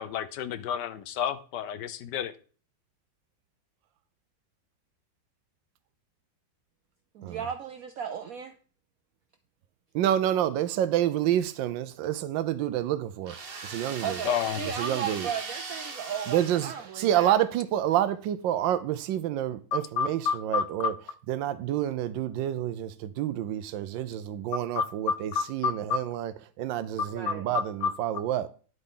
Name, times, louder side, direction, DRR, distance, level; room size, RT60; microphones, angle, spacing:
voice 1, 0.0-2.3 14.2-14.7 19.7-20.9 24.8-26.0 27.3-27.9, left 7 dB, 70° left, 1.3 m, -30 dB
voice 2, 7.1-8.5 14.0-17.3 27.1-27.5, right 7 dB, 65° right, 1.0 m, -35 dB
voice 3, 9.9-13.3 13.6-14.2 14.7-15.3 16.3-20.9 21.3-26.3 26.6-28.5, right 11 dB, 85° right, 1.3 m, -28 dB
sound 1, 13.2-17.4, right 4 dB, 40° right, 1.1 m, -40 dB
10.5 x 7.9 x 3.8 m
omnidirectional pair, 2.0 m